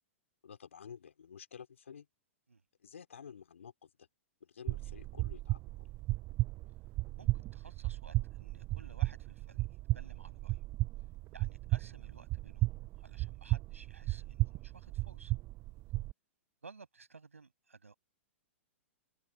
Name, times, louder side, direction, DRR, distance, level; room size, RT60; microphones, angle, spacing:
voice 1, 0.4-2.1 2.8-4.1 4.4-5.6, left 7 dB, 75° left, 3.5 m, -51 dB
sound 1, 4.7-16.1, right 20 dB, 35° right, 0.8 m, -35 dB
voice 2, 7.2-9.7 9.9-10.6 11.3-12.7 13.0-15.3 16.6-17.9, right 4 dB, 85° right, 7.7 m, -56 dB
open air
figure-of-eight pair, 110°, 7 cm